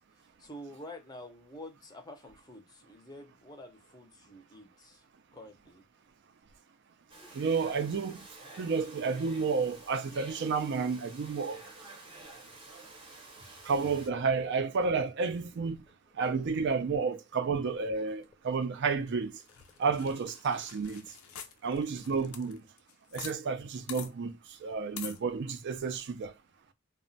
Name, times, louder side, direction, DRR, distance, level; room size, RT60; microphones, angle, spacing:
voice 1, 0.4-5.0 5.3-5.8 16.6-16.7, left 1 dB, 20° left, 0.5 m, -48 dB
Domestic sounds home sounds, 7.1-14.1, right 2 dB, 25° right, 0.7 m, -50 dB
voice 2, 7.3-8.3 8.6-11.6 13.6-15.8 16.2-19.3 19.8-21.1 21.6-22.6 23.1-26.3, right 5 dB, 50° right, 0.4 m, -31 dB
sound 1, 19.4-23.4 23.6-23.7 23.9-24.1 25.0-25.2, left 8 dB, 75° left, 0.4 m, -46 dB
2.1 x 2.1 x 3.8 m
head